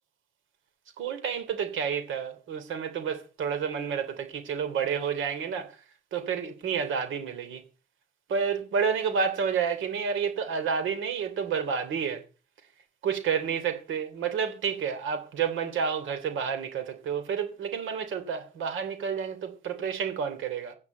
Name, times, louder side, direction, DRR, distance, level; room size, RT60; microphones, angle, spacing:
voice 1, 1.0-5.7 6.1-7.6 8.3-12.2 13.0-20.7, right 6 dB, 80° right, 3.1 m, -30 dB
11.0 x 9.4 x 7.8 m
cardioid pair, 90°, 20 cm